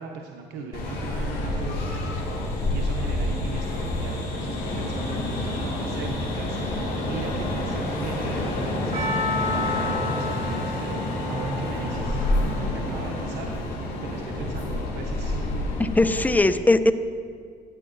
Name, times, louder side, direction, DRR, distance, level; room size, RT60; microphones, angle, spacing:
voice 1, 0.0-15.4, right 4 dB, 80° right, 1 dB, 0.8 m, -38 dB
sound 1, 0.7-16.4, left 1 dB, 65° left, 1.9 m, -28 dB
Percussion, 8.9-13.9, left 2 dB, 35° right, 1.5 m, -33 dB
voice 2, 15.8-16.9, left 2 dB, 10° left, 12 dB, 0.3 m, -19 dB
12.5 x 8.8 x 2.5 m, 2.1 s
cardioid pair, 110°, 17 cm